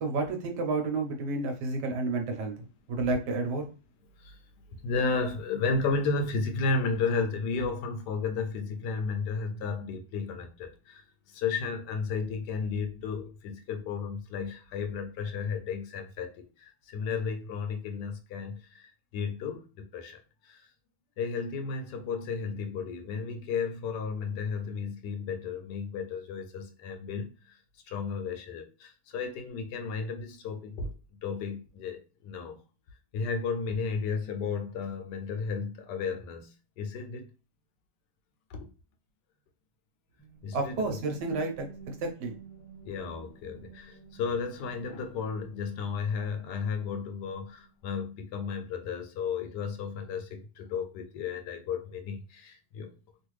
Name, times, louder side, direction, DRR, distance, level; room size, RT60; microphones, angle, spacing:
voice 1, 0.0-3.7 40.5-42.3, right 3 dB, 75° right, 1.3 m, -31 dB
voice 2, 4.7-20.6 21.2-27.6 27.9-30.9 31.2-32.6 33.1-37.3 38.5-38.7 40.4-41.0 42.9-52.9, left 5 dB, 80° left, 1.2 m, -33 dB
sound 1, 40.2-48.0, right 6 dB, 5° right, 1.2 m, -51 dB
3.1 x 2.5 x 3.1 m
omnidirectional pair, 1.9 m